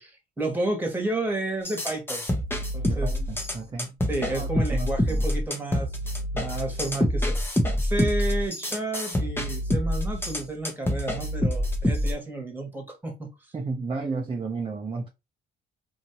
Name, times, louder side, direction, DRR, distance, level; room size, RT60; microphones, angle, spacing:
voice 1, 0.0-2.2 2.7-3.1 4.1-7.3 7.8-13.3, right 2 dB, 10° right, 1.4 m, -31 dB
sound 1, 1.6-12.1, equal, 10° left, 0.8 m, -26 dB
voice 2, 2.9-4.0 4.3-5.2 13.5-15.1, right 3 dB, 25° right, 0.6 m, -33 dB
2.8 x 2.6 x 2.9 m
cardioid pair, 90°, 20 cm